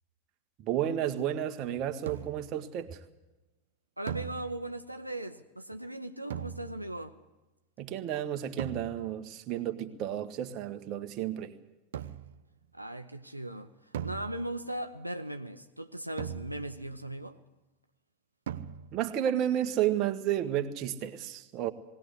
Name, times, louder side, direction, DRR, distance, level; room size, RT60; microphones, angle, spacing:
voice 1, 0.6-3.0 7.8-11.5 18.9-21.7, right 11 dB, 35° right, 7 dB, 1.5 m, -32 dB
sound 1, 2.1-2.6 4.1-4.9 6.3-7.1 8.6-9.3 11.9-12.5 13.9-14.8 16.2-17.0 18.5-19.2, right 9 dB, 60° right, 0.8 m, -40 dB
voice 2, 4.0-7.1 12.7-13.7 14.0-17.4, right 1 dB, 90° right, 6 dB, 0.9 m, -38 dB
20.5 x 17.5 x 8.3 m, 1.0 s
figure-of-eight pair, 90°, 0 cm